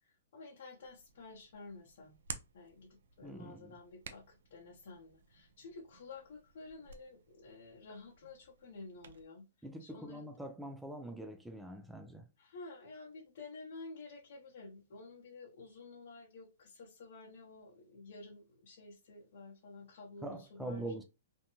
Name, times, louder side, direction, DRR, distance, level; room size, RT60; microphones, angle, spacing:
voice 1, 0.3-2.1 2.5-9.4 9.8-10.3 12.4-20.9, left 3 dB, 60° left, 0.8 m, -51 dB
Hands, 0.8-9.2, right 6 dB, 75° right, 0.4 m, -53 dB
voice 2, 3.2-3.8 9.6-12.3 20.2-21.0, right 1 dB, 5° right, 0.4 m, -44 dB
2.6 x 2.2 x 2.9 m
hypercardioid pair, 150°, 0 cm